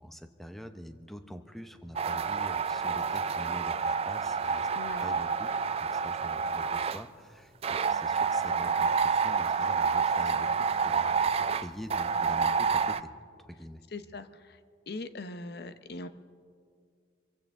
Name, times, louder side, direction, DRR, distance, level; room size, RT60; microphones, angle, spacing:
voice 1, 0.0-4.7 5.0-5.5 5.8-13.1 13.4-13.8, equal, ahead, 7 dB, 0.7 m, -45 dB
sound 1, 2.0-7.0 7.6-13.0, right 5 dB, 30° right, 0.3 m, -28 dB
voice 2, 4.7-5.0 13.9-14.6 14.9-16.1, left 2 dB, 55° left, 11 dB, 0.7 m, -41 dB
24.5 x 15.5 x 3.6 m, 2.1 s
head